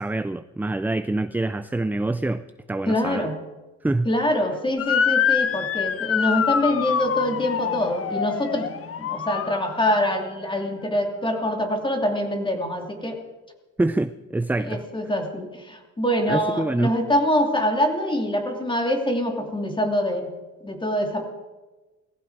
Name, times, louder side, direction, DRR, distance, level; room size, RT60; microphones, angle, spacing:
voice 1, 0.0-3.3 3.8-4.1 13.8-14.8 16.3-16.9, right 2 dB, 5° right, 12 dB, 0.4 m, -25 dB
voice 2, 2.9-3.4 4.0-8.7 9.0-13.2 14.6-20.3 20.6-21.3, left 1 dB, 15° left, 3 dB, 2.8 m, -24 dB
Motor vehicle (road) / Siren, 4.8-10.0, left 7 dB, 50° left, 0.9 m, -25 dB
18.5 x 15.5 x 4.8 m, 1.2 s
cardioid pair, 90°, 30 cm